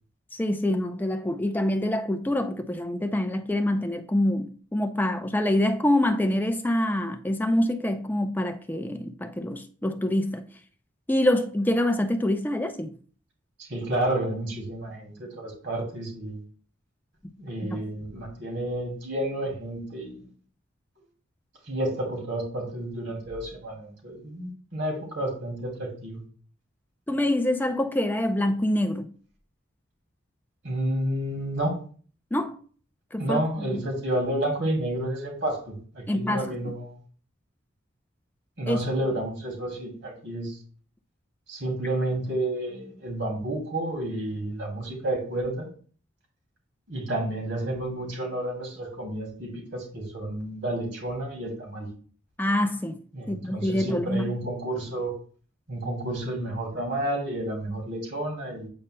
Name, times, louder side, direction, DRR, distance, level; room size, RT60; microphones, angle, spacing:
voice 1, 0.3-10.5 11.1-12.9 17.6-17.8 27.1-29.1 32.3-32.6 33.1-33.4 36.1-36.5 38.7-38.8 52.4-53.0 53.3-54.3, left 1 dB, 10° left, 0.4 m, -25 dB
voice 2, 13.6-16.4 17.4-20.3 21.7-26.2 30.6-31.8 33.2-37.0 38.6-40.6 41.5-45.7 46.9-51.9 53.1-55.1 55.7-58.7, right 1 dB, 60° right, 2.6 m, -30 dB
8.6 x 5.4 x 2.2 m
head